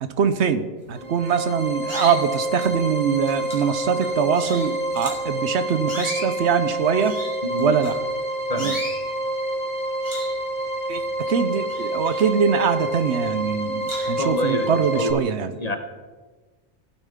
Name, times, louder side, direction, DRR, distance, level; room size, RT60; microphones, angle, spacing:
voice 1, 0.0-7.2 7.6-8.0 8.6-8.7 10.9-15.5, right 7 dB, 70° right, 11 dB, 0.9 m, -23 dB
sound 1, 0.9-15.1, right 1 dB, 40° right, 4.8 m, -28 dB
sound 2, 1.0-1.3 1.8-2.8 3.3-5.3 5.8-8.2 8.6-9.0 9.5-9.7 10.0-11.2 11.5-12.8 13.2-13.3 13.8-14.3, equal, 15° right, 3.1 m, -36 dB
voice 2, 7.4-7.7 8.5-8.8 14.2-15.2 15.6-15.8, left 1 dB, 40° left, 6 dB, 0.8 m, -27 dB
16.0 x 8.8 x 3.6 m, 1.3 s
omnidirectional pair, 1.3 m